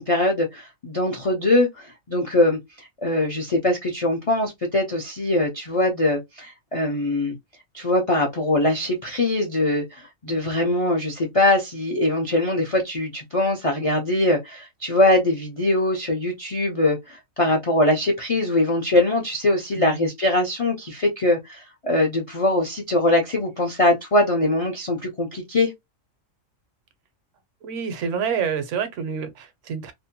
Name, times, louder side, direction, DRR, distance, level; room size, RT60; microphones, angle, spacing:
voice 1, 0.0-7.3 7.7-25.7, left 1 dB, 55° left, 0.3 m, -22 dB
voice 2, 19.7-20.1 27.6-29.9, right 6 dB, 70° right, 0.9 m, -28 dB
2.6 x 2.1 x 2.7 m
omnidirectional pair, 1.4 m